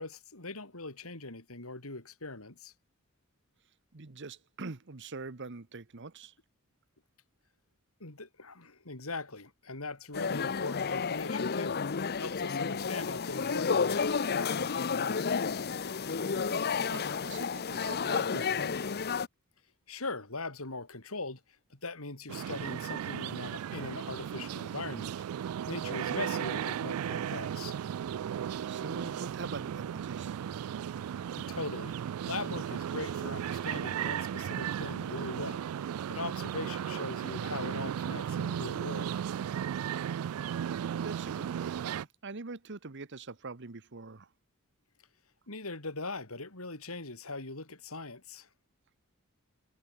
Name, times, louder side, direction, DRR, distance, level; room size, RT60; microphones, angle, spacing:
voice 1, 0.0-2.7 8.0-11.8 12.0-15.3 19.9-21.4 21.7-25.1 25.7-27.8 31.4-35.7 36.1-39.2 45.5-48.5, left 3 dB, 80° left, 4.5 m, -41 dB
voice 2, 3.9-6.3 16.0-16.2 16.5-18.9 28.4-30.4 40.5-44.3, right 3 dB, 55° right, 1.2 m, -44 dB
sound 1, 10.1-19.3, left 5 dB, 50° left, 0.7 m, -31 dB
sound 2, 22.3-42.0, right 9 dB, 90° right, 0.3 m, -35 dB
head